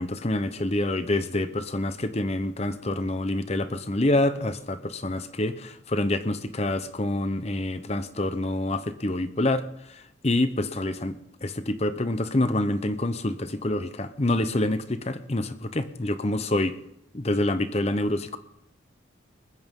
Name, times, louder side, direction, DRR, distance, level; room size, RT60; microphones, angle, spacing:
voice 1, 0.0-16.7 17.1-18.4, left 1 dB, 30° left, 0.8 m, -27 dB
20.5 x 15.0 x 3.7 m
head